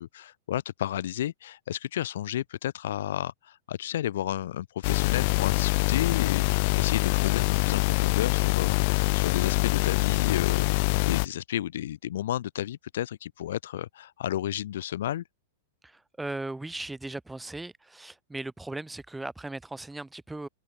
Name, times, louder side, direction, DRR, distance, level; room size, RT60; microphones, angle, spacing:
voice 1, 0.0-15.2, left 12 dB, 70° left, 1.1 m, -32 dB
sound 1, 4.8-11.3, left 27 dB, 45° left, 0.5 m, -24 dB
voice 2, 15.8-20.5, right 2 dB, 5° right, 2.6 m, -38 dB
supercardioid pair, 155°, 0 cm